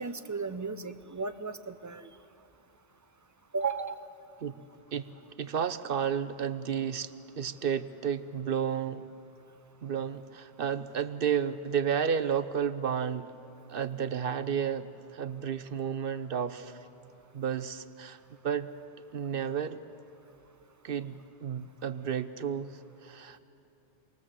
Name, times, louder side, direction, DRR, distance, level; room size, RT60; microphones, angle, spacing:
voice 1, 0.0-2.1 3.5-4.0, right 4 dB, 25° right, 10 dB, 0.4 m, -34 dB
voice 2, 5.4-9.1 9.8-13.3 13.7-16.8 17.3-18.7 19.1-19.8 20.8-23.4, right 8 dB, 55° right, 12 dB, 0.8 m, -32 dB
27.0 x 19.5 x 7.5 m, 2.8 s
omnidirectional pair, 1.2 m